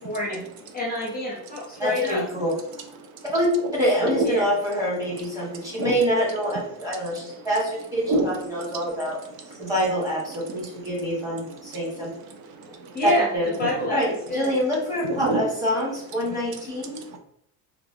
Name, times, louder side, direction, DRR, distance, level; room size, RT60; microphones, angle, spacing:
voice 1, 0.0-0.4 0.7-2.2 4.2-4.5 12.6-13.3 13.6-14.0 14.3-14.5, left 1 dB, 25° left, -3 dB, 0.7 m, -27 dB
voice 2, 1.8-2.5 3.3-3.5 3.7-9.2 9.6-12.1 13.0-13.5 13.9-17.0, equal, 10° right, -5 dB, 1.3 m, -26 dB
voice 3, 5.6-5.9 8.1-8.3 12.6-12.9 13.6-13.9 15.2-15.4 16.9-17.2, right 2 dB, 65° right, 6 dB, 0.6 m, -26 dB
3.4 x 2.3 x 3.5 m, 0.71 s
cardioid pair, 165°, 40 cm